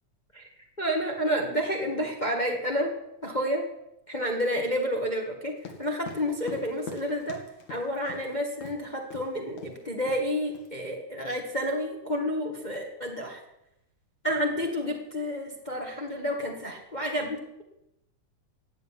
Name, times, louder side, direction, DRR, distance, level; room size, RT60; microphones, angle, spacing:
voice 1, 0.8-2.9 3.2-3.6 4.1-7.4 7.7-13.4 14.2-17.6, equal, 20° left, 2 dB, 1.3 m, -30 dB
sound 1, 5.6-8.3 8.6-8.8 9.1-9.3 9.6-9.8 10.1-10.7, left 4 dB, 70° left, 3.4 m, -42 dB
16.0 x 8.0 x 9.8 m, 0.87 s
omnidirectional pair, 3.5 m